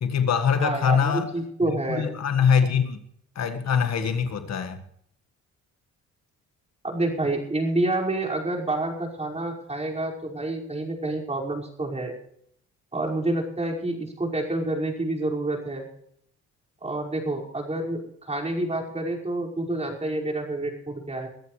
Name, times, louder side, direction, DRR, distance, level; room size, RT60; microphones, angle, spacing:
voice 1, 0.0-1.3 1.9-3.0 3.4-4.8, left 7 dB, 60° left, 1.8 m, -23 dB
voice 2, 0.6-2.1 6.8-12.2 12.9-15.9 16.8-21.3, right 2 dB, 20° right, 5.5 m, -28 dB
23.0 x 14.0 x 3.3 m
cardioid pair, 90°, 30 cm